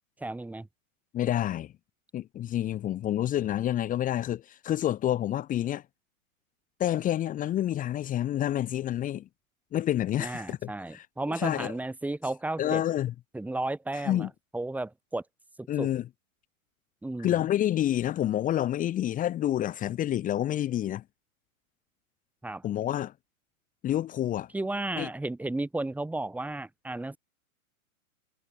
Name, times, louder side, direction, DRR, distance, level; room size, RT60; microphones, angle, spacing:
voice 1, 0.2-0.7 10.2-12.8 13.3-14.3 14.5-15.2 15.6-15.9 17.0-17.4 22.4-22.6 24.5-27.2, right 2 dB, 5° right, 3.7 m, -33 dB
voice 2, 1.1-1.7 2.1-5.8 6.8-9.3 9.7-11.7 12.6-13.1 13.9-14.3 15.7-16.1 17.2-21.0 22.6-23.1 23.8-24.5 25.0-25.1, left 12 dB, 20° left, 1.7 m, -28 dB
hypercardioid pair, 140°, 43 cm